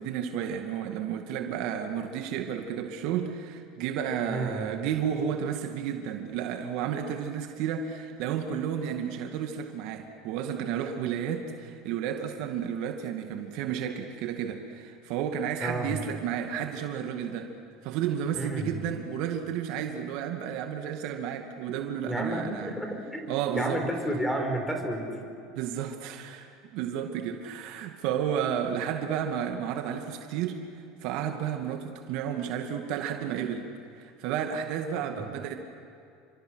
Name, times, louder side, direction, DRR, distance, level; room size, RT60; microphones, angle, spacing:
voice 1, 0.0-17.5 17.8-22.8 23.3-23.8 25.6-30.6 31.0-33.7 34.0-35.6, right 8 dB, 65° right, 4 dB, 2.2 m, -32 dB
voice 2, 4.3-4.6 15.6-16.0 18.3-18.8 22.1-23.3 23.6-25.1 35.2-35.3, right 1 dB, 5° left, 4 dB, 4.6 m, -31 dB
29.0 x 24.5 x 6.4 m, 2.5 s
supercardioid pair, 115°, 0 cm